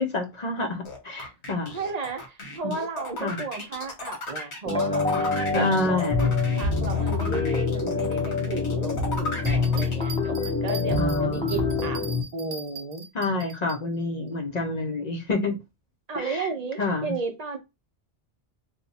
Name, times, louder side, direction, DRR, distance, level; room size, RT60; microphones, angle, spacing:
voice 1, 0.0-1.8 2.6-2.8 3.2-3.4 5.5-6.3 11.0-11.4 13.1-15.6 16.1-16.5 16.8-17.1, left 3 dB, 45° left, 0.7 m, -28 dB
sound 1, 0.8-9.9, left 2 dB, 90° left, 1.5 m, -36 dB
voice 2, 1.7-6.0 6.6-12.0 12.3-13.0 14.2-14.4 15.4-15.6 16.1-17.6, right 4 dB, 45° right, 0.7 m, -34 dB
sound 2, 4.6-12.2, left 4 dB, 5° left, 0.6 m, -26 dB
sound 3, 9.4-13.8, right 4 dB, 75° right, 1.0 m, -41 dB
2.8 x 2.3 x 4.0 m
omnidirectional pair, 1.1 m